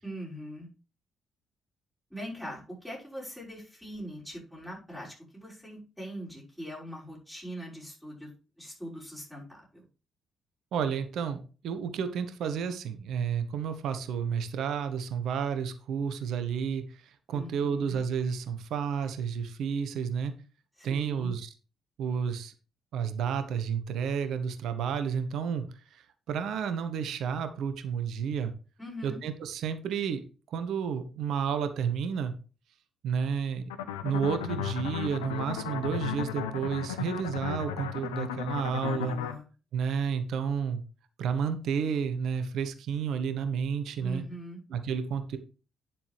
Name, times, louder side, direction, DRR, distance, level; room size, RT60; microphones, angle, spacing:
voice 1, 0.0-0.7 2.1-8.3 8.6-9.8 17.3-18.0 20.8-21.4 28.8-29.2 38.8-39.5 44.0-44.6, equal, 5° left, -5 dB, 5.9 m, -42 dB
voice 2, 10.7-16.8 17.3-20.3 20.8-21.5 22.0-22.5 22.9-25.6 26.3-28.5 29.0-30.2 30.5-32.3 33.0-33.6 34.0-39.2 39.7-40.8 41.2-44.2 44.7-45.4, right 7 dB, 55° right, 9 dB, 1.1 m, -31 dB
sound 1, 33.7-39.3, left 9 dB, 75° left, 0.6 m, -35 dB
9.6 x 7.4 x 3.3 m, 0.34 s
figure-of-eight pair, 40°, 0 cm